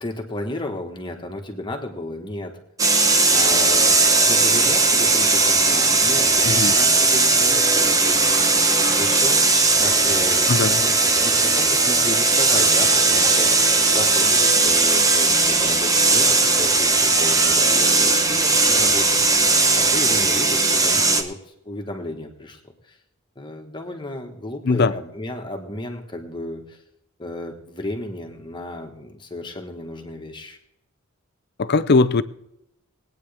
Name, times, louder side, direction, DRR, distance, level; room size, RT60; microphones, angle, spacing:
voice 1, 0.0-2.6 3.3-3.9 4.2-8.2 8.9-9.5 9.8-10.5 10.8-19.2 19.8-21.4 21.6-23.0 23.3-26.8 27.2-30.6, left 1 dB, 20° left, 1.6 m, -33 dB
sound 1, 2.8-21.2, right 3 dB, 15° right, 0.9 m, -18 dB
voice 2, 10.5-10.8 24.6-24.9 31.6-32.2, left 4 dB, 45° left, 0.5 m, -19 dB
20.0 x 9.4 x 3.5 m
head